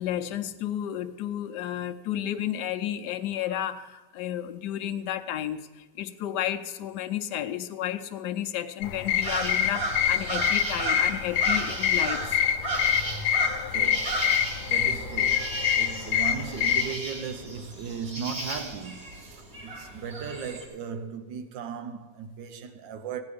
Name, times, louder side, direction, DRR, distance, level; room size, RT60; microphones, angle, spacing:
voice 1, 0.0-12.4, left 11 dB, 70° left, 1.1 m, -32 dB
sound 1, 8.8-16.9, left 9 dB, 90° left, 1.4 m, -26 dB
sound 2, 9.2-20.6, right 1 dB, 35° right, 2.2 m, -34 dB
voice 2, 13.0-13.3 13.7-23.2, right 7 dB, 75° right, 1.5 m, -37 dB
15.5 x 9.6 x 5.0 m
omnidirectional pair, 2.1 m